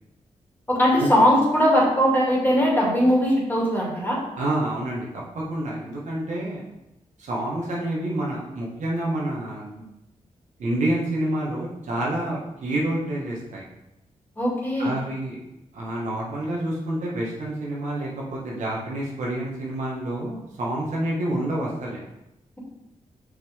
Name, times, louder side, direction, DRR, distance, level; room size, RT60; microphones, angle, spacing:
voice 1, 0.7-4.2 14.4-14.9, equal, 15° left, -4 dB, 2.6 m, -20 dB
voice 2, 4.4-5.1 5.4-6.6 7.2-9.8 10.6-13.7 14.8-15.4 15.7-22.0, right 1 dB, 85° right, -4 dB, 1.8 m, -28 dB
5.9 x 5.7 x 3.6 m, 0.91 s
cardioid pair, 65°, 12 cm